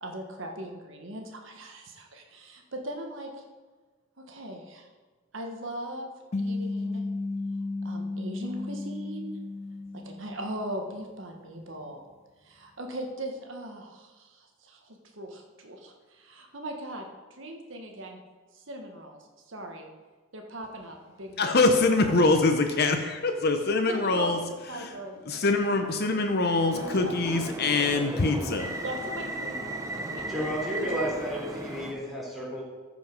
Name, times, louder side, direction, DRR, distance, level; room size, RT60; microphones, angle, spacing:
voice 1, 0.0-3.3 4.2-4.9 5.3-6.1 6.4-7.0 7.8-9.4 9.9-12.0 12.4-17.1 17.4-18.2 18.5-19.2 19.5-19.9 20.3-21.5 22.0-22.4 23.9-25.6 26.9-27.6 28.8-30.3 30.8-31.2, right 1 dB, 65° right, 2 dB, 1.3 m, -39 dB
sound 1, 6.3-11.0, left 3 dB, 30° left, 0.4 m, -34 dB
voice 2, 21.4-24.4 24.7-24.9 25.3-28.7, left 3 dB, 50° left, 6 dB, 0.8 m, -24 dB
sound 2, 26.7-31.9, right 1 dB, 15° right, 0.9 m, -36 dB
voice 3, 30.3-32.6, equal, ahead, -6 dB, 3.6 m, -32 dB
14.5 x 5.2 x 5.2 m, 1.3 s
head